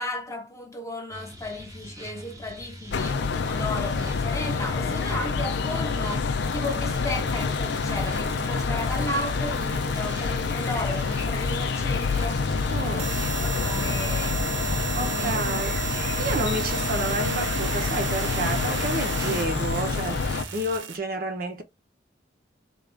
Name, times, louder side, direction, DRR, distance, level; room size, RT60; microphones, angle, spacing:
voice 1, 0.0-12.5 12.9-14.5 15.0-15.4, left 1 dB, 15° left, 1.0 m, -35 dB
sound 1, 1.1-20.8, equal, 20° right, 0.8 m, -43 dB
sound 2, 2.9-20.4, left 4 dB, 65° left, 0.4 m, -27 dB
sound 3, 6.4-21.0, right 7 dB, 85° right, 0.6 m, -35 dB
voice 2, 12.7-13.1 14.9-20.2 20.5-21.6, right 2 dB, 50° right, 0.8 m, -30 dB
3.9 x 2.5 x 3.4 m
head